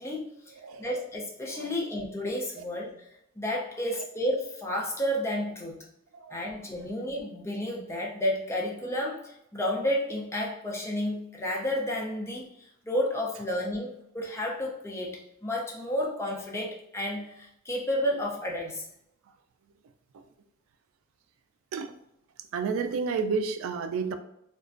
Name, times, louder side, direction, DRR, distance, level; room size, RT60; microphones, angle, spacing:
voice 1, 0.0-3.1 3.4-5.9 6.3-18.9, left 1 dB, 15° left, -2 dB, 0.4 m, -31 dB
voice 2, 0.6-0.9 1.5-1.7 6.1-6.5 20.1-20.2 21.7-21.9 22.5-24.1, right 5 dB, 90° right, 11 dB, 0.3 m, -31 dB
2.4 x 2.1 x 2.4 m, 0.78 s
head